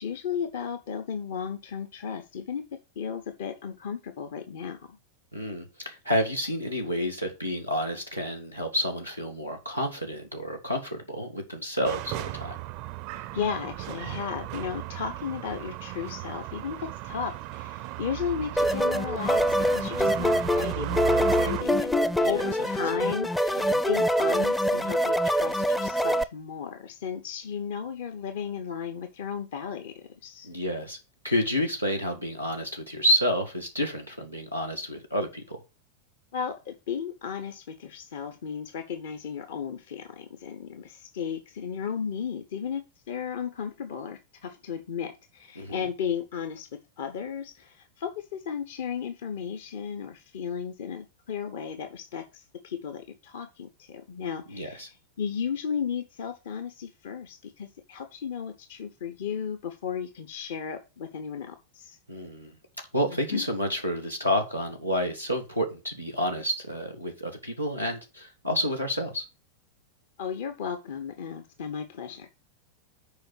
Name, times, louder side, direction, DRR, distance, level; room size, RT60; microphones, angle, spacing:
voice 1, 0.0-5.0 13.2-22.0 22.2-30.5 36.3-42.8 43.1-46.7 47.0-62.0 63.1-63.5 70.2-72.3, left 7 dB, 55° left, 8 dB, 0.9 m, -35 dB
voice 2, 5.3-12.6 22.2-22.5 23.0-23.1 23.7-23.8 30.4-31.0 31.2-35.6 45.6-45.8 54.5-54.9 62.1-62.5 62.9-69.2, equal, 90° left, 2 dB, 1.7 m, -29 dB
sound 1, 11.8-21.6, right 17 dB, 45° right, 0.4 m, -36 dB
sound 2, 18.6-26.2, equal, 5° left, 0.5 m, -25 dB
6.9 x 5.0 x 6.0 m, 0.28 s
figure-of-eight pair, 90°, 0 cm